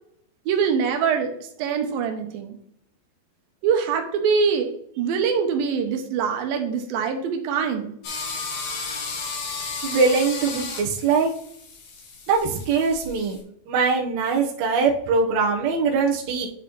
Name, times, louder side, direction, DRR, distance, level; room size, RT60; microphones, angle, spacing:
voice 1, 0.5-2.6 3.6-4.7 5.0-7.9, right 6 dB, 85° right, 5 dB, 2.6 m, -24 dB
sound 1, 8.0-13.4, left 4 dB, 65° left, 2.6 m, -34 dB
voice 2, 9.8-11.3 12.3-13.4 13.7-16.5, right 4 dB, 65° right, -2 dB, 1.9 m, -22 dB
10.0 x 4.0 x 3.0 m, 0.69 s
omnidirectional pair, 4.0 m